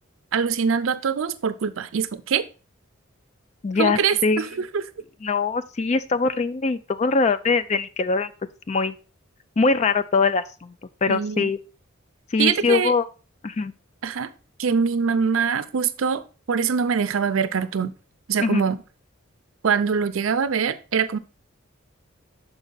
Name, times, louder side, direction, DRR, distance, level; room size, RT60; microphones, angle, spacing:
voice 1, 0.3-2.5 3.8-4.8 11.1-11.5 12.4-12.9 14.0-14.3 14.6-16.2 16.5-17.9 18.3-18.8 19.6-21.2, right 6 dB, 75° right, 12 dB, 0.5 m, -23 dB
voice 2, 3.6-4.4 5.2-8.3 8.7-9.0 9.6-10.7 11.0-11.6 12.3-13.1 13.4-13.7 18.4-18.6, left 4 dB, 35° left, 13 dB, 0.4 m, -22 dB
6.6 x 4.6 x 3.9 m, 0.34 s
head